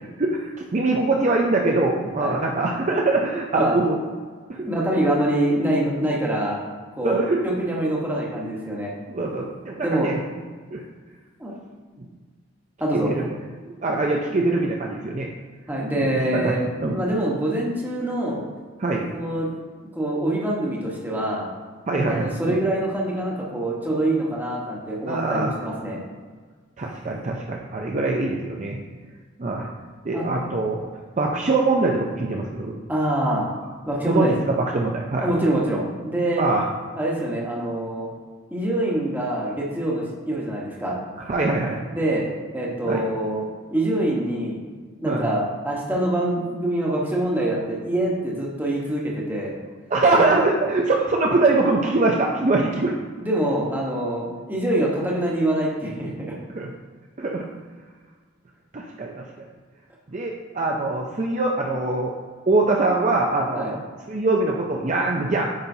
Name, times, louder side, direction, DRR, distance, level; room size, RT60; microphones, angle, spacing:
voice 1, 0.2-4.0 4.5-4.7 7.0-7.4 9.1-10.2 10.7-10.8 12.0-12.1 12.9-13.3 13.6-15.3 16.0-17.0 18.8-19.1 21.9-22.6 25.1-25.5 26.8-28.8 29.4-29.7 30.0-30.8 31.2-32.8 34.1-35.3 36.4-36.7 41.3-41.8 42.9-43.0 45.0-45.3 49.9-52.9 56.5-56.7 57.2-57.5 58.7-59.5 60.1-62.1 62.5-63.8 64.1-65.5, right 2 dB, 35° right, 0 dB, 0.5 m, -23 dB
voice 2, 4.6-6.6 7.0-7.2 7.4-8.9 9.8-10.1 11.4-11.5 12.8-13.3 15.7-18.4 19.1-19.5 19.9-21.5 22.1-26.0 30.1-30.2 32.9-33.4 33.9-34.3 35.2-36.4 36.9-38.1 38.5-41.0 41.8-44.6 45.0-49.6 50.1-50.2 53.2-56.3 63.5-63.7, right 1 dB, 10° right, -3 dB, 1.1 m, -25 dB
8.7 x 5.4 x 2.7 m, 1.5 s
head